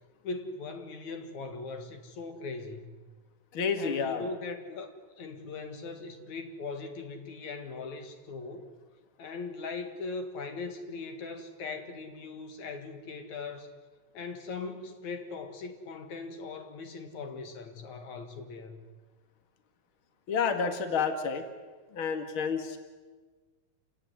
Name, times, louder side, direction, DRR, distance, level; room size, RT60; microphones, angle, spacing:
voice 1, 0.2-3.0 3.8-4.9 5.2-8.7 9.2-13.7 14.1-18.8, left 4 dB, 75° left, 5 dB, 3.2 m, -40 dB
voice 2, 3.5-4.2 20.3-21.5 21.9-22.8, left 6 dB, 45° left, 6 dB, 2.7 m, -29 dB
29.0 x 17.5 x 9.8 m, 1.4 s
omnidirectional pair, 3.4 m